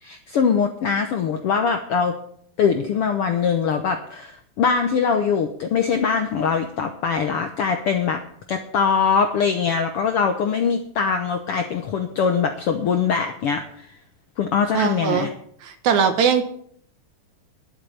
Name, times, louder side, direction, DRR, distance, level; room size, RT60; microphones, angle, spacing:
voice 1, 0.0-2.2 2.6-8.2 8.5-13.9 14.4-15.3, left 6 dB, 70° left, 6 dB, 1.4 m, -22 dB
voice 2, 14.7-15.3 15.6-16.4, right 7 dB, 65° right, 8 dB, 2.4 m, -20 dB
11.5 x 7.9 x 8.7 m, 0.63 s
omnidirectional pair, 3.7 m